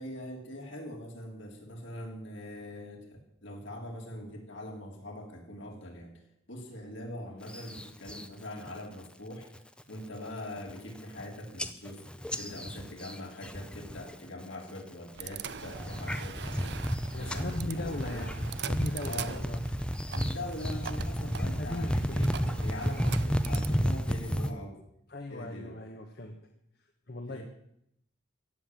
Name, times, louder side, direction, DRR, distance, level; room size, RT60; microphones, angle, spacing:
voice 1, 0.0-6.1 6.5-9.5 9.9-12.1 12.3-18.3 19.0-19.4 20.1-24.8 25.3-25.8 27.3-27.4, left 1 dB, 65° left, 1 dB, 3.5 m, -42 dB
sound 1, 7.5-8.3 8.7-9.1 9.4-9.8 10.3-10.4 10.6-11.2 11.6-14.1 14.4-14.9 15.4-24.5, equal, 5° left, 0.6 m, -32 dB
sound 2, 15.1-23.7, right 7 dB, 55° right, 0.5 m, -43 dB
voice 2, 17.1-19.6 21.5-22.2 25.1-26.4 27.1-27.4, left 2 dB, 50° left, 3 dB, 1.3 m, -38 dB
15.5 x 7.6 x 9.0 m, 0.75 s
head